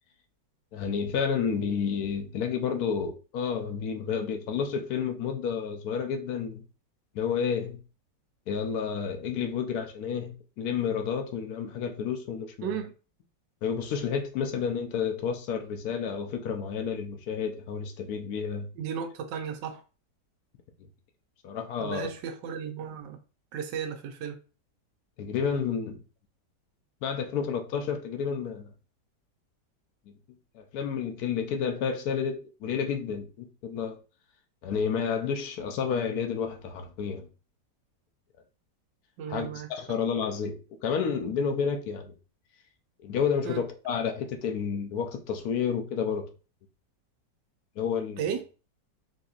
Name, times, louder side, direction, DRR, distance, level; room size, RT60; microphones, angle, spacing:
voice 1, 0.7-6.6 7.1-7.8 8.5-12.8 13.6-18.7 21.4-22.1 25.2-26.0 27.0-28.7 30.1-30.2 30.5-34.0 34.6-37.3 39.3-42.1 43.0-46.2 47.8-48.3, left 6 dB, 70° left, 1.0 m, -30 dB
voice 2, 12.6-12.9 18.7-19.8 21.8-23.2 23.5-24.4 39.2-39.7 43.4-43.6 48.2-48.4, right 7 dB, 85° right, 1.3 m, -34 dB
4.1 x 2.7 x 2.4 m
omnidirectional pair, 1.9 m